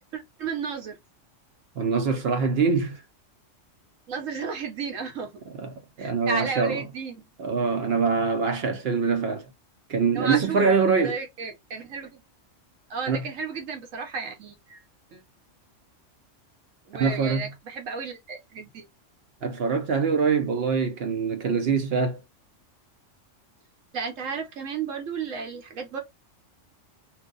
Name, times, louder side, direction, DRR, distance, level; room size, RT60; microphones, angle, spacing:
voice 1, 0.1-1.0 4.1-5.4 6.0-7.2 10.1-10.7 11.0-12.2 12.9-14.8 15.1-15.2 16.9-18.9 23.9-26.0, right 5 dB, 85° right, 1.3 m, -33 dB
voice 2, 1.8-3.0 5.5-6.8 7.4-9.4 9.9-11.2 13.1-13.3 16.9-17.5 19.4-22.2, right 5 dB, 60° right, 0.7 m, -24 dB
3.0 x 2.2 x 3.7 m
omnidirectional pair, 1.3 m